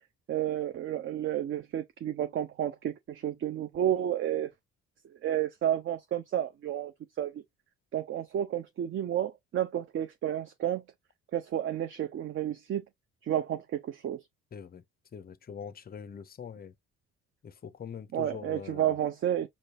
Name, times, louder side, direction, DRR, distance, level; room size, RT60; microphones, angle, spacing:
voice 1, 0.3-4.5 5.2-6.9 7.2-7.4 7.9-10.8 11.3-12.8 13.2-14.2 18.1-19.5, right 11 dB, 35° right, 0.4 m, -31 dB
voice 2, 14.5-14.8 15.1-16.7 17.4-19.0, left 7 dB, 25° left, 0.5 m, -43 dB
5.1 x 2.0 x 2.4 m
hypercardioid pair, 45°, 39 cm